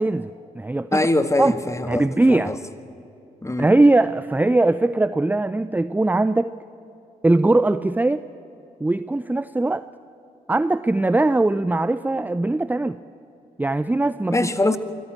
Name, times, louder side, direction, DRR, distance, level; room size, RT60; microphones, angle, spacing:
voice 1, 0.0-1.1 1.4-1.5 1.9-2.5 3.6-6.5 7.2-8.3 8.8-9.8 10.5-13.0 13.6-14.4, right 2 dB, 10° right, 15 dB, 0.6 m, -20 dB
voice 2, 0.9-2.6 3.4-3.7 14.3-14.8, left 2 dB, 15° left, 11 dB, 1.7 m, -23 dB
24.5 x 15.5 x 9.1 m, 2.8 s
hypercardioid pair, 40°, 18 cm